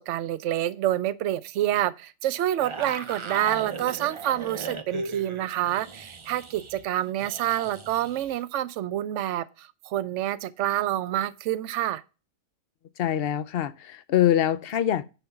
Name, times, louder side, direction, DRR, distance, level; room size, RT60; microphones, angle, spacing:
voice 1, 0.0-12.0, right 13 dB, 65° right, 0.9 m, -27 dB
sound 1, 2.6-8.4, right 3 dB, 40° right, 0.4 m, -38 dB
voice 2, 13.0-15.0, left 11 dB, 60° left, 0.6 m, -24 dB
10.0 x 3.6 x 5.7 m
omnidirectional pair, 1.5 m